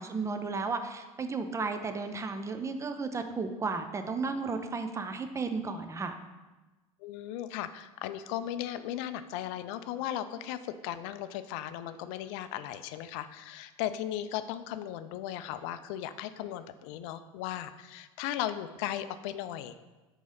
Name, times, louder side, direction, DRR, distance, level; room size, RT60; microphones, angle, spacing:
voice 1, 0.0-6.2, right 4 dB, 15° right, 7 dB, 0.5 m, -34 dB
voice 2, 7.0-19.7, left 11 dB, 55° left, 12 dB, 0.4 m, -37 dB
4.6 x 3.9 x 5.4 m, 1.2 s
figure-of-eight pair, 75°, 19 cm